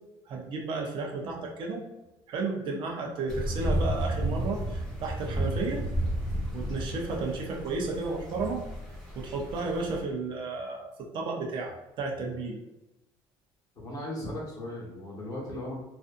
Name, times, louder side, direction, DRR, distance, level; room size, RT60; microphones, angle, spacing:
voice 1, 0.3-1.8 2.3-5.8 6.5-8.6 9.2-12.6, right 3 dB, 55° right, 0 dB, 0.6 m, -33 dB
sound 1, 3.3-10.0, right 1 dB, ahead, 1.1 m, -32 dB
voice 2, 13.8-15.7, left 1 dB, 40° left, -4 dB, 1.0 m, -37 dB
2.5 x 2.4 x 2.4 m, 0.94 s
cardioid pair, 140°, 10 cm